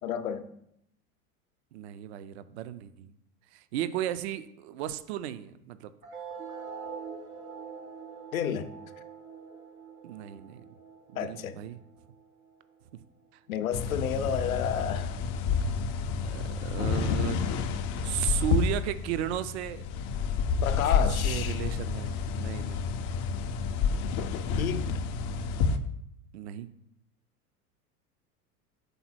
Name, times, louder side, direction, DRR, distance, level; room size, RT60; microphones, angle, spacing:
voice 1, 0.0-0.4 8.3-8.7 11.1-11.6 13.5-15.2 20.6-21.6 24.6-24.9, left 8 dB, 70° left, 0.7 m, -31 dB
voice 2, 1.7-3.1 3.5-5.9 10.0-10.6 11.1-11.8 12.9-13.0 16.2-17.4 18.0-19.8 21.2-22.9 26.3-26.7, right 12 dB, 50° right, 0.5 m, -35 dB
sound 1, 6.0-13.0, right 6 dB, 80° right, 1.4 m, -44 dB
sound 2, 13.7-25.8, left 5 dB, 30° left, 0.4 m, -29 dB
5.4 x 3.8 x 5.8 m
figure-of-eight pair, 80°, 43 cm